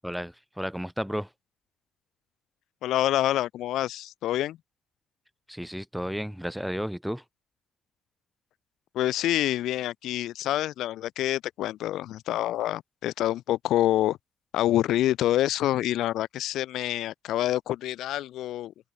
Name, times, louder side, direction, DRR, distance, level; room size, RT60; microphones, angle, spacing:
voice 1, 0.0-1.3 5.5-7.2, equal, ahead, 0.4 m, -33 dB
voice 2, 2.8-4.6 8.9-14.2 14.5-18.7, left 13 dB, 90° left, 0.4 m, -27 dB
cardioid pair, 155°, 0 cm